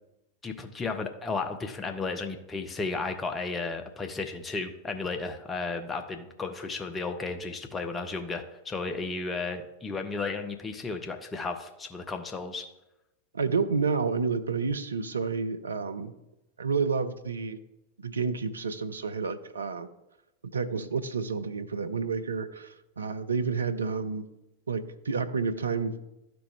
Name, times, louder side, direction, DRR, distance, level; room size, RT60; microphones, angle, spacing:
voice 1, 0.4-12.7, left 4 dB, 15° left, 6 dB, 0.7 m, -34 dB
voice 2, 13.3-16.1 16.6-17.6 18.0-19.9 20.5-24.3 24.7-26.0, right 5 dB, 75° right, 10 dB, 0.5 m, -30 dB
12.5 x 4.3 x 3.3 m, 0.92 s
figure-of-eight pair, 90°, 0 cm